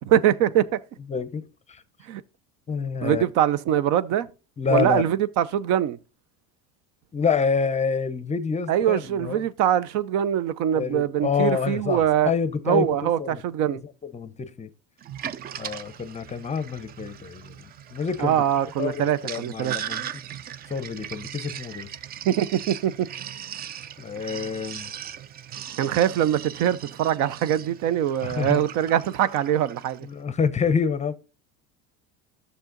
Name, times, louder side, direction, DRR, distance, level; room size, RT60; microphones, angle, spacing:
voice 1, 0.0-0.8 2.1-2.2 3.0-4.3 4.7-6.0 8.7-12.3 12.7-13.8 18.2-19.8 22.3-23.1 24.2-24.3 25.8-30.1, right 10 dB, 60° right, 0.7 m, -23 dB
voice 2, 1.1-1.8 2.7-3.2 4.6-5.1 7.1-9.4 10.7-13.4 13.7-13.8 14.1-14.7 15.6-17.5 17.9-18.4 18.8-20.0 20.7-21.9 24.0-24.9 28.2-28.6 30.1-31.1, left 6 dB, 20° left, 0.7 m, -27 dB
Sink (filling or washing), 15.0-30.0, right 10 dB, 30° right, 0.4 m, -39 dB
11.5 x 6.8 x 3.9 m
supercardioid pair, 105°, 33 cm